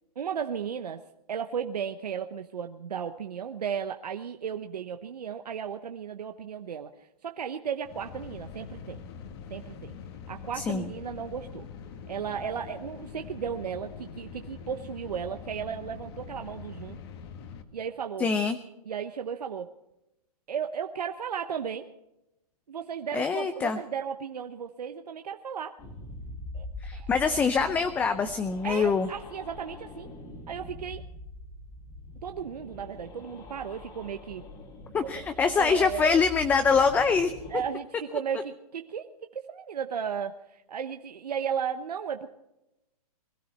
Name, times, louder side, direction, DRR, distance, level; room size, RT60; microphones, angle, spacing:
voice 1, 0.2-1.0 1.3-6.9 7.2-9.0 9.5-9.9 10.3-11.7 12.1-17.0 17.7-18.3 18.9-19.7 20.5-21.9 22.7-25.8 26.5-26.6 26.9-27.1 28.6-30.1 30.5-31.0 32.2-34.4 35.0-36.3 37.5-39.1 39.3-42.3, right 7 dB, 90° right, 6 dB, 1.0 m, -35 dB
sound 1, 7.8-17.6, left 6 dB, 40° left, 1.6 m, -43 dB
voice 2, 10.5-10.9 18.2-18.6 23.1-23.8 26.8-29.1 34.9-37.3, left 5 dB, 10° left, 10 dB, 0.5 m, -24 dB
sound 2, 25.8-37.7, left 2 dB, 25° left, 2.4 m, -43 dB
22.0 x 13.5 x 4.3 m, 0.91 s
hypercardioid pair, 150°, 20 cm